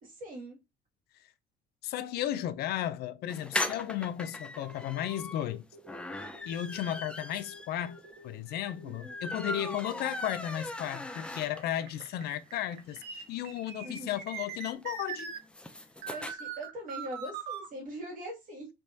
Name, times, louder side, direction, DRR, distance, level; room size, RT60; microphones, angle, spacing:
voice 1, 0.0-0.6 8.8-9.1 13.8-14.2 16.1-18.7, right 1 dB, 55° right, 2.0 m, -42 dB
voice 2, 1.8-5.6 6.5-15.3, left 12 dB, 70° left, 0.4 m, -34 dB
sound 1, 3.3-11.9 12.3-12.4 12.6-12.7 12.9-16.3, left 2 dB, 5° left, 0.4 m, -39 dB
sound 2, 4.7-15.4 16.0-17.7, right 6 dB, 75° right, 1.0 m, -45 dB
3.5 x 2.9 x 2.7 m
cardioid pair, 110°, 17 cm